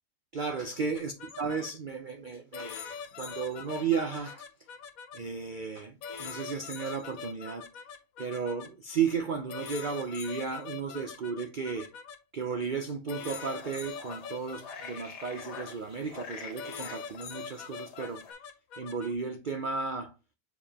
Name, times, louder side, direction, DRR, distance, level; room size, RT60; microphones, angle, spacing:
voice 1, 0.3-2.9 3.2-4.5 5.1-7.7 8.2-11.9 12.3-18.2 18.8-20.1, right 5 dB, 70° right, 0.4 m, -34 dB
sound 1, 1.0-1.7 2.5-5.2 6.0-8.7 9.5-12.2 13.1-15.7 16.6-19.1, left 6 dB, 65° left, 1.2 m, -43 dB
sound 2, 13.1-18.3, left 5 dB, 90° left, 1.9 m, -47 dB
7.1 x 4.7 x 2.8 m
omnidirectional pair, 1.7 m